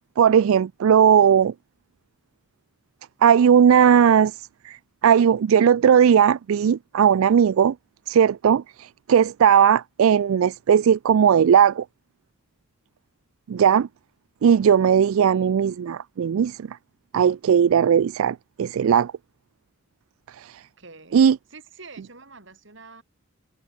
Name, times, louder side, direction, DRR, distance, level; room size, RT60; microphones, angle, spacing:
voice 1, 0.2-1.5 3.2-4.4 4.6-7.7 8.1-11.8 13.5-13.9 14.4-16.8 17.1-19.1 20.4-20.6 21.1-21.4, right 8 dB, 75° right, 0.3 m, -18 dB
voice 2, 15.1-15.6 20.8-21.2 21.5-23.0, right 4 dB, 55° right, 3.5 m, -46 dB
head